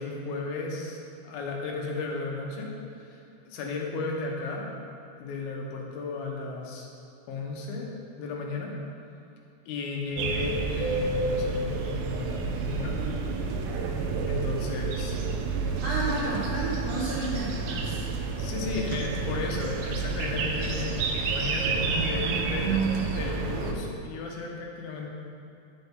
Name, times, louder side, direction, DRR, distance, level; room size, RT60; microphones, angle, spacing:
voice 1, 0.0-2.7 3.0-4.7 5.2-6.9 7.3-7.9 8.2-8.7 9.7-13.0 14.3-15.2 16.2-16.3 18.4-22.7 23.1-25.1, left 3 dB, 80° left, -1 dB, 2.9 m, -34 dB
sound 1, 10.1-12.7, left 5 dB, 50° right, 2.1 m, -42 dB
sound 2, 10.2-23.7, right 4 dB, 85° right, 2.4 m, -30 dB
voice 2, 15.8-18.1 21.8-23.1, right 4 dB, 70° right, -6 dB, 1.6 m, -30 dB
8.7 x 8.0 x 3.7 m, 2.7 s
omnidirectional pair, 4.2 m